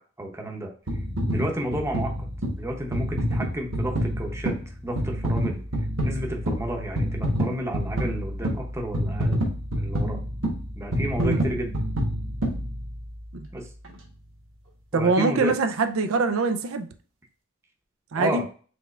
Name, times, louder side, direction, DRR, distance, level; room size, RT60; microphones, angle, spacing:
voice 1, 0.2-0.7 1.3-2.1 2.6-4.6 4.8-5.6 6.0-9.4 9.7-10.2 10.8-11.8 13.5-13.7 14.9-15.5 18.2-18.5, right 1 dB, 15° right, 0.8 m, -31 dB
sound 1, 0.9-13.3 13.8-14.0, equal, 65° right, 1.3 m, -28 dB
voice 2, 14.9-16.9 18.1-18.4, right 3 dB, 80° right, 0.5 m, -23 dB
5.2 x 3.4 x 2.4 m
head